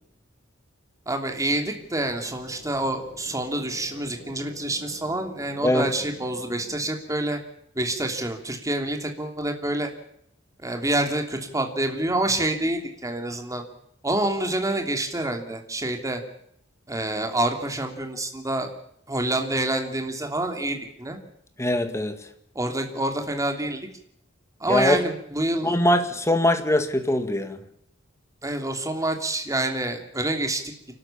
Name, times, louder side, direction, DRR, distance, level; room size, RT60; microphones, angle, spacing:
voice 1, 1.1-7.4 7.7-9.9 10.6-13.6 14.0-16.2 16.9-18.7 19.1-21.2 22.5-23.9 24.6-25.8 28.4-30.6, right 1 dB, 15° right, 3 dB, 3.0 m, -27 dB
sound 1, 1.2-6.9, left 1 dB, 60° left, 5.5 m, -47 dB
voice 2, 21.6-22.2 24.7-25.0 25.6-27.6, left 1 dB, 15° left, 8 dB, 2.0 m, -22 dB
29.0 x 13.0 x 7.2 m, 0.72 s
head